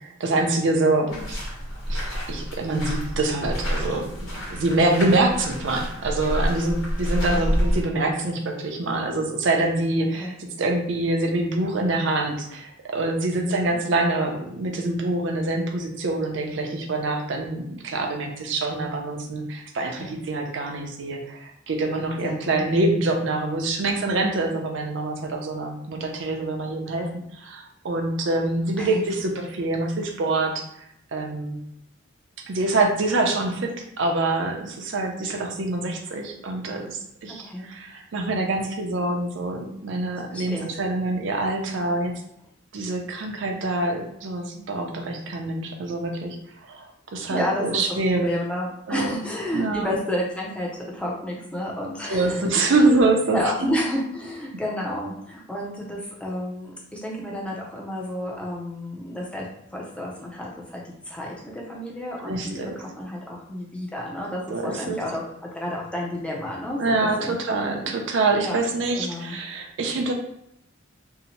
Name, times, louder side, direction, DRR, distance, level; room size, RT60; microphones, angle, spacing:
voice 1, 0.2-1.4 1.9-4.1 4.5-30.9 31.1-31.6 32.5-42.1 42.7-46.4 46.6-48.3 48.9-49.1 49.5-49.9 52.1-53.4 62.3-62.7 64.5-65.0 66.8-70.1, right 2 dB, 60° right, 3 dB, 0.5 m, -25 dB
sound 1, 1.1-7.8, equal, 80° left, 1.2 m, -28 dB
voice 2, 7.3-8.1 10.1-10.3 13.4-13.8 20.0-20.1 22.2-22.6 28.8-28.9 37.4-37.7 40.3-40.7 47.3-47.8 48.2-53.0 53.3-67.4 67.7-67.9 68.4-68.6 68.9-69.4, left 1 dB, 5° left, -3 dB, 0.5 m, -31 dB
2.7 x 2.1 x 2.9 m, 0.74 s
head